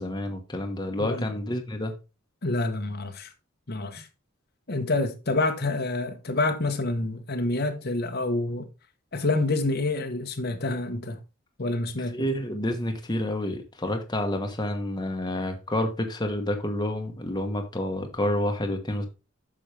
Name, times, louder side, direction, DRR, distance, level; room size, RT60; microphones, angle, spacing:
voice 1, 0.0-1.9 12.0-19.1, left 1 dB, 20° left, 1.2 m, -29 dB
voice 2, 2.4-3.3 3.7-4.1 4.7-8.6 9.1-11.2 11.6-12.2, left 2 dB, 55° left, 1.1 m, -27 dB
8.9 x 6.3 x 3.3 m
head